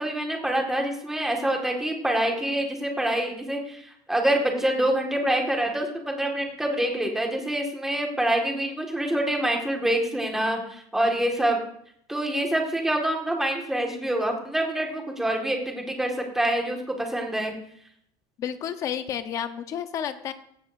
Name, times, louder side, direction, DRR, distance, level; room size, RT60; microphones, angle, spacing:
voice 1, 0.0-11.6 12.1-17.5, right 1 dB, 5° right, 1 dB, 1.8 m, -26 dB
voice 2, 18.4-20.3, left 9 dB, 30° left, 9 dB, 0.9 m, -31 dB
17.0 x 15.5 x 2.6 m, 0.70 s
cardioid pair, 175°, 11 cm